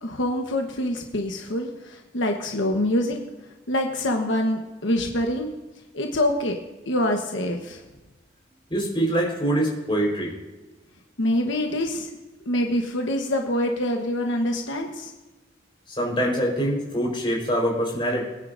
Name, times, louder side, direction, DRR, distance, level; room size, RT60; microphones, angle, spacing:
voice 1, 0.0-3.2 3.7-5.5 5.9-6.6 6.9-7.8 11.2-12.1 12.4-15.1, left 1 dB, 80° left, 2 dB, 1.2 m, -25 dB
voice 2, 8.7-10.3 16.0-18.3, right 1 dB, 25° left, -2 dB, 4.3 m, -24 dB
23.5 x 9.7 x 2.6 m, 1.1 s
head